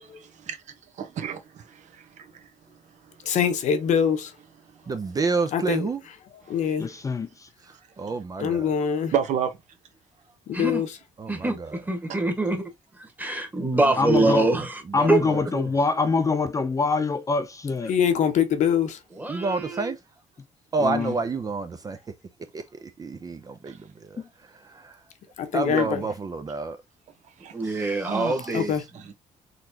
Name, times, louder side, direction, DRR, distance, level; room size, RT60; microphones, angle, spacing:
voice 1, 1.2-2.4 9.1-9.5 23.7-23.8 27.4-27.6 28.0-28.5 28.9-29.1, right 8 dB, 70° right, 1.1 m, -30 dB
voice 2, 3.2-4.3 5.5-5.9 6.5-6.9 8.4-9.1 10.5-10.9 17.9-19.0 25.4-26.0 28.5-28.8, left 8 dB, 70° left, 1.0 m, -23 dB
voice 3, 4.9-6.0 7.6-8.7 11.2-11.8 13.7-15.7 19.3-20.0 20.7-22.0 22.5-25.0 25.5-26.8 27.6-28.9, right 4 dB, 30° right, 0.5 m, -30 dB
voice 4, 6.8-7.5 14.0-14.5 14.9-18.0 20.8-21.1 24.2-24.3, left 4 dB, 25° left, 0.5 m, -24 dB
voice 5, 11.3-12.6 13.0-14.8 15.1-15.4 19.1-19.9 27.5-28.8, right 2 dB, 15° right, 1.4 m, -25 dB
4.0 x 3.2 x 2.8 m
cardioid pair, 115°, 13 cm